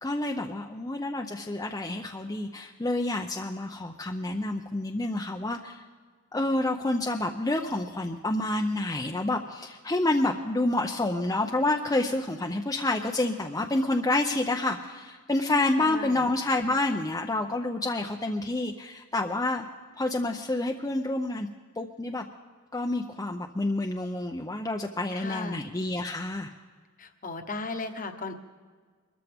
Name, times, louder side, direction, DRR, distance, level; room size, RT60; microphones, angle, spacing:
voice 1, 0.0-5.8 6.3-19.7 20.0-21.5 21.8-22.2 22.7-26.5, left 2 dB, 15° left, 2 dB, 0.6 m, -28 dB
voice 2, 15.8-16.2 25.1-25.7 27.0-28.3, left 3 dB, 40° left, 7 dB, 1.1 m, -36 dB
24.0 x 13.5 x 3.6 m, 1.5 s
head